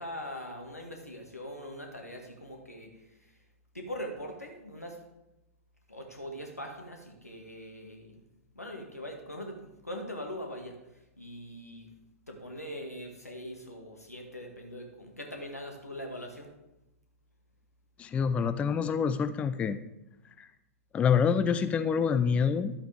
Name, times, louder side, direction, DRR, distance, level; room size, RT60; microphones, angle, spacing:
voice 1, 0.0-2.9 3.7-5.0 5.9-8.1 8.6-10.8 11.2-11.9 12.3-16.5, equal, 85° left, 2 dB, 1.8 m, -41 dB
voice 2, 18.0-19.8 20.4-20.5 20.9-22.7, left 6 dB, 15° left, 11 dB, 0.4 m, -26 dB
11.5 x 7.9 x 3.5 m, 0.93 s
figure-of-eight pair, 105°, 8 cm